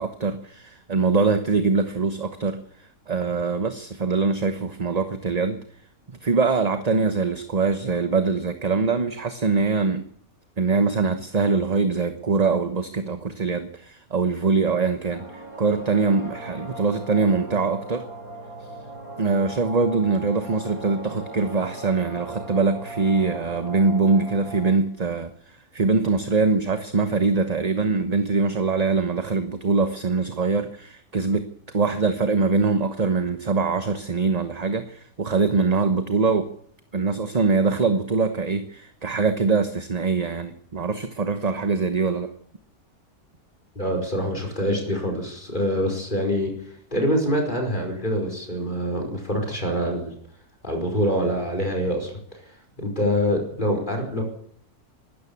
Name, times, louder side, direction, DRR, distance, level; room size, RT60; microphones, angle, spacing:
voice 1, 0.0-5.6 6.1-10.1 10.6-18.0 19.2-36.5 36.9-42.3, right 4 dB, 30° right, 9 dB, 1.1 m, -23 dB
sound 1, 15.1-24.7, right 2 dB, 65° right, 4.0 m, -38 dB
voice 2, 43.7-46.5 46.9-50.1 50.6-52.1 52.8-54.2, equal, 30° left, 1 dB, 5.1 m, -25 dB
23.0 x 13.0 x 8.5 m, 0.67 s
omnidirectional pair, 1.6 m